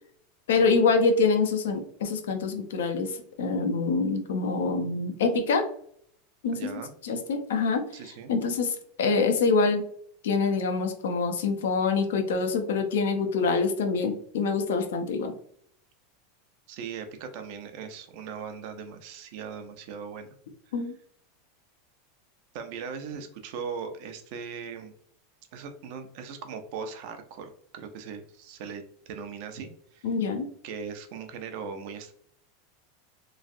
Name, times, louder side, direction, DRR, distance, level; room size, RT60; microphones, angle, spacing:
voice 1, 0.5-5.6 6.4-7.9 8.3-9.8 10.2-15.3 20.7-21.0 30.0-30.5, left 4 dB, 85° left, 6 dB, 0.6 m, -25 dB
voice 2, 6.5-6.9 7.9-8.3 16.7-20.3 22.5-24.9 25.5-30.1 30.6-32.1, right 6 dB, 60° right, 7 dB, 0.5 m, -39 dB
3.1 x 2.4 x 2.5 m, 0.64 s
supercardioid pair, 115°, 0 cm